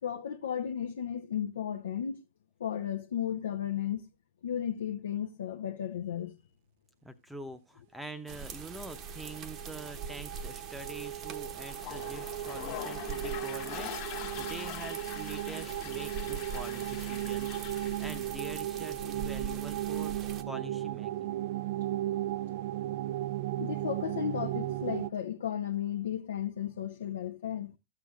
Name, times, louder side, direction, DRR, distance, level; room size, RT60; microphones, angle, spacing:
voice 1, 0.0-2.3 2.6-4.1 4.4-6.4 23.6-27.8, left 9 dB, 70° left, 0.7 m, -34 dB
voice 2, 7.0-21.4, right 2 dB, 5° right, 0.8 m, -45 dB
sound 1, 8.3-20.4, right 5 dB, 35° right, 0.9 m, -43 dB
sound 2, 8.7-25.1, right 14 dB, 55° right, 0.4 m, -36 dB
Toilet flush, 11.6-18.4, left 11 dB, 45° left, 1.4 m, -43 dB
13.0 x 7.6 x 2.4 m
figure-of-eight pair, 100°, 0 cm